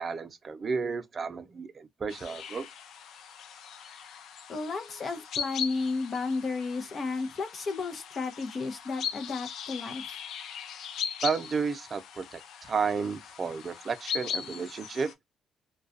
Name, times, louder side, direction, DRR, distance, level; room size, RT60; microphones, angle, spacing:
voice 1, 0.0-2.7 11.2-15.1, right 5 dB, 40° right, 0.5 m, -32 dB
sound 1, 2.1-15.1, left 7 dB, 75° left, 0.4 m, -39 dB
voice 2, 4.5-10.0, left 4 dB, 45° left, 0.7 m, -33 dB
2.3 x 2.2 x 2.4 m
cardioid pair, 90°, 0 cm